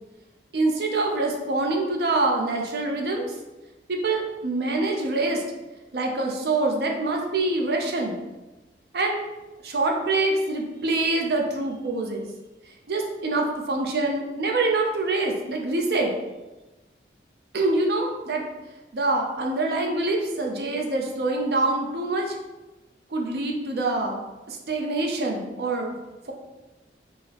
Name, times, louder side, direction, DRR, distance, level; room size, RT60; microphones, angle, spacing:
voice 1, 0.5-3.2 3.9-5.4 5.9-8.2 8.9-9.2 9.6-12.2 12.9-16.1 17.5-18.4 18.9-22.3 23.1-24.2 24.5-26.0, right 2 dB, 60° right, 1 dB, 0.5 m, -25 dB
3.9 x 2.0 x 2.8 m, 1.1 s
head